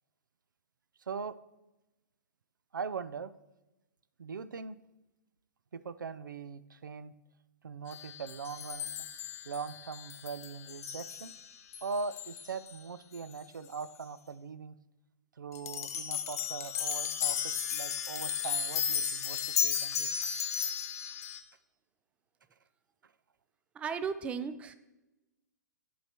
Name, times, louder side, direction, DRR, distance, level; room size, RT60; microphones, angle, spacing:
voice 1, 1.0-1.4 2.7-3.3 4.2-4.8 5.7-7.1 7.6-8.9 9.5-11.3 11.8-14.8 15.4-20.1 23.0-23.1, right 5 dB, 85° right, 14 dB, 0.4 m, -41 dB
sound 1, 7.9-12.8 13.1-13.2 13.7-13.8 15.5-21.4, left 8 dB, 55° left, 0.8 m, -35 dB
voice 2, 23.7-24.7, right 6 dB, 10° right, 12 dB, 0.3 m, -35 dB
12.0 x 4.6 x 2.9 m, 0.99 s
hypercardioid pair, 120°, 10 cm